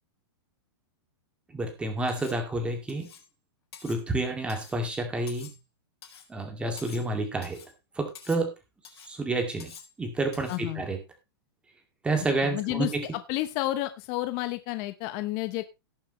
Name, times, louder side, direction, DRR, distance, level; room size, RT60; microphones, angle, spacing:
voice 1, 1.5-3.1 3.8-5.6 6.3-7.6 8.0-8.5 9.1-9.7 10.0-11.0 12.0-13.0, right 2 dB, 10° right, 5 dB, 2.2 m, -29 dB
Cutlery silverware, 2.1-2.4 2.9-3.3 3.7-4.0 4.5-4.8 5.3-5.6 6.0-6.3 6.8-7.1 7.4-7.7 8.1-8.5 8.8-9.1 9.6-9.9 10.3-10.6, left 7 dB, 75° left, 4.5 m, -48 dB
voice 2, 10.5-10.8 12.4-15.6, left 16 dB, 35° left, 10 dB, 0.9 m, -31 dB
18.0 x 7.1 x 3.1 m, 0.25 s
hypercardioid pair, 160°, 13 cm